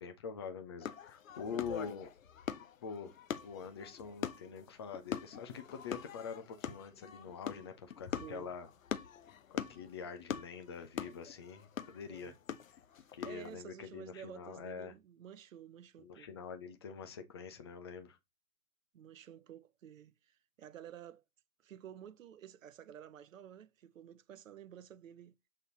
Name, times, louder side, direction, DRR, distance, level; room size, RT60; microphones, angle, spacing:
voice 1, 0.0-2.1 2.8-3.1 3.4-8.7 9.5-12.3 13.1-14.9 16.0-18.2, left 6 dB, 15° left, 0.5 m, -45 dB
sound 1, 0.8-13.5, left 9 dB, 55° left, 1.0 m, -43 dB
voice 2, 8.1-8.5 12.1-12.4 13.2-16.3 18.9-21.2 21.6-25.3, right 9 dB, 55° right, 0.7 m, -52 dB
7.8 x 4.3 x 3.9 m
figure-of-eight pair, 120°, 49 cm